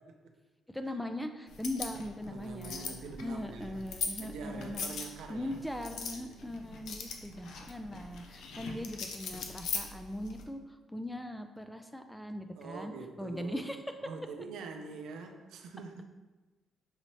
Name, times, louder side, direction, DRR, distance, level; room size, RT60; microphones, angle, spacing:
voice 1, 0.7-2.9 3.2-4.8 5.3-10.6 10.9-12.9 13.2-13.8, left 1 dB, 5° left, 7 dB, 0.3 m, -40 dB
sound 1, 1.5-10.4, left 5 dB, 75° left, 0.5 m, -41 dB
voice 2, 2.3-3.8 4.2-6.8 8.5-8.9 12.6-13.7 14.0-16.0, right 4 dB, 85° right, 4 dB, 0.5 m, -45 dB
5.5 x 2.8 x 3.0 m, 1.2 s
cardioid pair, 90°, 0 cm